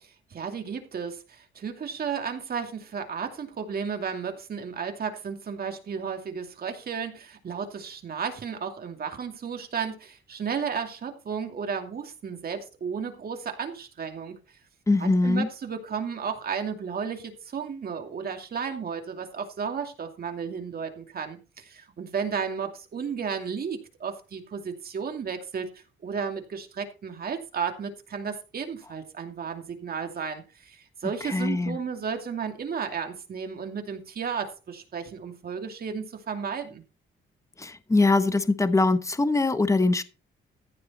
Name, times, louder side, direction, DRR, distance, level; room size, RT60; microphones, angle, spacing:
voice 1, 0.3-14.3 15.0-36.8, right 6 dB, 50° right, 2.6 m, -33 dB
voice 2, 14.9-15.5 31.0-31.8 37.6-40.0, left 3 dB, 15° left, 1.2 m, -23 dB
15.0 x 6.9 x 4.3 m
cardioid pair, 90°, 20 cm